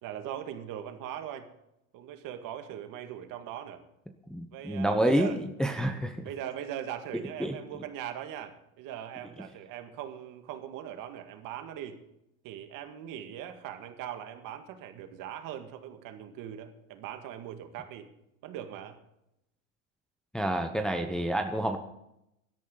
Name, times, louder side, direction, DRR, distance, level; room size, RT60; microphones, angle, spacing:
voice 1, 0.0-1.5 1.9-3.8 4.5-5.4 5.9-12.0 12.4-18.1 18.4-19.0 21.0-21.4, right 10 dB, 50° right, 7 dB, 2.1 m, -40 dB
voice 2, 4.3-6.2 7.4-7.5 20.3-21.8, right 1 dB, ahead, 4 dB, 0.9 m, -28 dB
17.0 x 12.5 x 4.0 m, 0.83 s
supercardioid pair, 125°, 42 cm